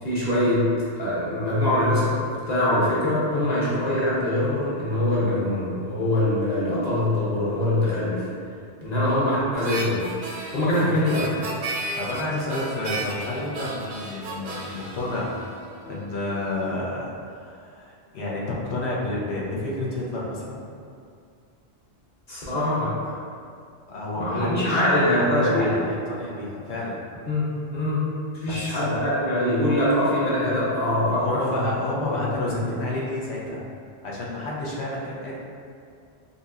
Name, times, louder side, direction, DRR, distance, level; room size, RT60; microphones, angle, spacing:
voice 1, 0.0-0.6 1.0-8.3 8.8-10.1 10.5-11.4 22.3-23.1 24.1-25.8 27.3-28.0 28.3-31.6 32.0-32.8, left 1 dB, 40° left, -9 dB, 0.9 m, -23 dB
Harmonica, 9.5-16.0, right 2 dB, 60° right, 0.6 m, -34 dB
voice 2, 12.0-15.3 15.9-20.6 23.9-27.0 28.4-28.8 31.2-33.6 34.0-35.4, left 2 dB, 80° left, -5 dB, 1.0 m, -30 dB
4.1 x 2.7 x 2.4 m, 2.3 s
omnidirectional pair, 1.1 m